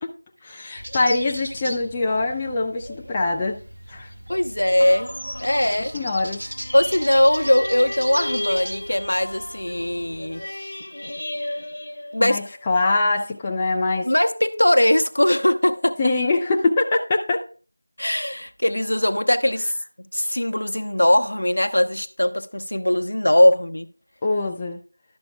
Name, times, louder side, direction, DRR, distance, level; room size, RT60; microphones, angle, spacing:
voice 1, 0.4-3.6 3.9-4.1 5.7-6.4 12.2-14.1 16.0-17.5 24.2-24.8, left 3 dB, 10° left, 0.3 m, -23 dB
sound 1, 0.8-10.5, equal, 80° right, 1.7 m, -37 dB
voice 2, 4.3-5.1 5.4-5.9 6.7-10.4 12.1-12.5 14.0-16.0 18.0-19.8 20.1-23.9, left 1 dB, 75° left, 0.8 m, -20 dB
sound 2, 4.8-12.6 13.2-13.3, left 1 dB, 55° left, 1.0 m, -35 dB
11.5 x 6.2 x 2.3 m
figure-of-eight pair, 175°, 0 cm